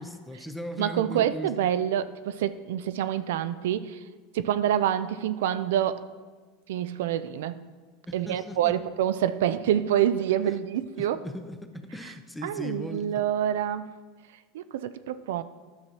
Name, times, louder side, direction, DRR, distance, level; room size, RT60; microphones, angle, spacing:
voice 1, 0.0-1.5 8.1-8.8 11.0-13.1, equal, 5° left, 7 dB, 0.6 m, -38 dB
voice 2, 0.8-4.0 4.3-6.0 6.7-7.6 8.1-11.2 12.4-13.9 14.5-15.4, right 10 dB, 80° right, 13 dB, 0.3 m, -27 dB
10.5 x 6.1 x 2.8 m, 1.4 s
supercardioid pair, 115°, 0 cm